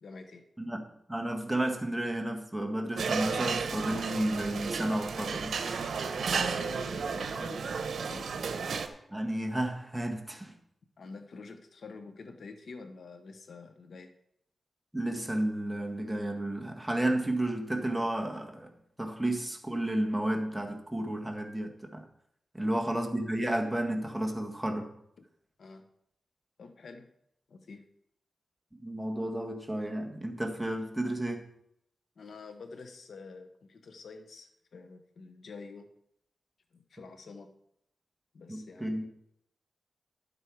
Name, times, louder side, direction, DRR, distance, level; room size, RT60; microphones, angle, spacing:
voice 1, 0.0-0.4 6.4-7.6 8.0-8.3 11.0-14.1 22.6-23.0 25.2-25.3 25.6-25.9 26.6-27.1 27.5-27.9 32.2-35.9 36.7-37.5 38.3-39.0, left 4 dB, 75° left, 7 dB, 1.1 m, -48 dB
voice 2, 0.6-5.6 9.1-10.5 14.9-18.7 19.0-22.0 22.5-24.9 28.8-31.5 38.5-39.0, right 1 dB, 5° right, 1 dB, 1.6 m, -32 dB
sound 1, 3.0-8.9, right 5 dB, 90° right, 0.9 m, -33 dB
12.0 x 7.7 x 4.8 m, 0.74 s
wide cardioid pair, 100°, 0 cm